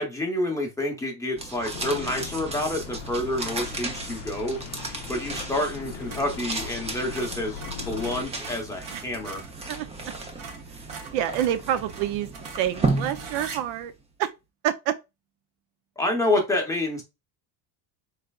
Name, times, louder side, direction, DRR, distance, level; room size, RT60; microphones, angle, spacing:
voice 1, 0.0-4.6 5.1-7.6 7.9-9.4 16.0-17.0, left 1 dB, 5° left, 0.7 m, -28 dB
sound 1, 1.3-13.9, right 3 dB, 15° right, 0.3 m, -34 dB
sound 2, 1.7-8.2, left 10 dB, 65° left, 0.5 m, -40 dB
sound 3, 2.2-2.5 5.5-5.7 6.0-9.6 10.0-10.1 10.4-13.6, right 5 dB, 65° right, 1.0 m, -42 dB
voice 2, 11.1-12.3 12.6-13.9 14.2-14.3 14.6-14.9, right 11 dB, 80° right, 0.6 m, -27 dB
3.7 x 3.3 x 2.3 m
cardioid pair, 150°, 47 cm